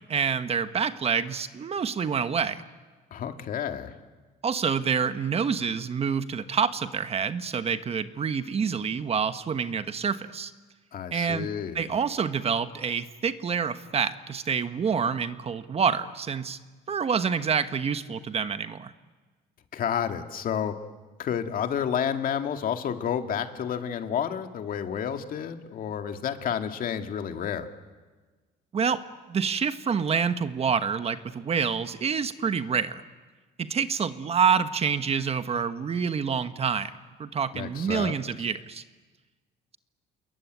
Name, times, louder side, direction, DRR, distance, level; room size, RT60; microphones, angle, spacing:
voice 1, 0.1-2.6 4.4-10.5 11.1-11.5 11.7-16.6 16.9-18.9 28.7-29.0 29.3-33.0 33.6-36.9 37.2-38.8, right 6 dB, 35° right, 11 dB, 1.2 m, -27 dB
voice 2, 3.1-3.9 10.9-11.9 19.7-20.7 21.2-27.7 37.5-38.1, left 8 dB, 55° left, 6 dB, 2.2 m, -30 dB
29.5 x 21.5 x 9.4 m, 1.3 s
cardioid pair, 110°, 17 cm